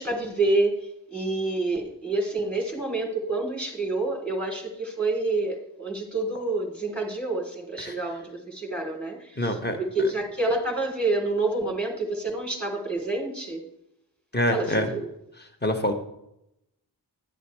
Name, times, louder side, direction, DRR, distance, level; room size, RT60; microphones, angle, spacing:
voice 1, 0.0-9.5 9.8-13.6 14.5-15.1, right 2 dB, 5° left, 0 dB, 3.3 m, -28 dB
voice 2, 9.4-9.8 14.3-14.9 15.6-15.9, left 1 dB, 25° left, 5 dB, 1.6 m, -25 dB
11.5 x 7.9 x 3.2 m, 0.80 s
cardioid pair, 45°, 40 cm